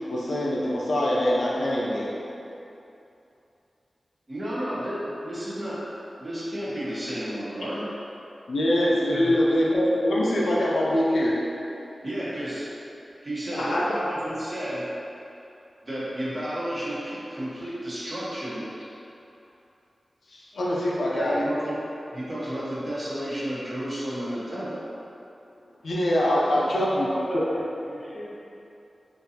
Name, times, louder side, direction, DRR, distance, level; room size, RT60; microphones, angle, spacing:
voice 1, 0.1-2.1 8.5-11.4 13.5-13.9 20.3-21.4 25.8-27.1 27.3-27.4, left 1 dB, 85° left, -5 dB, 0.5 m, -24 dB
voice 2, 4.3-5.8 6.2-7.9 9.1-9.4 12.0-12.7 13.2-14.9 15.8-18.7 21.1-21.8 22.1-24.8, right 1 dB, 35° right, -9 dB, 1.0 m, -32 dB
voice 3, 26.1-28.3, equal, 30° left, -7 dB, 0.8 m, -34 dB
3.7 x 2.6 x 2.8 m, 2.7 s
wide cardioid pair, 80°, 0 cm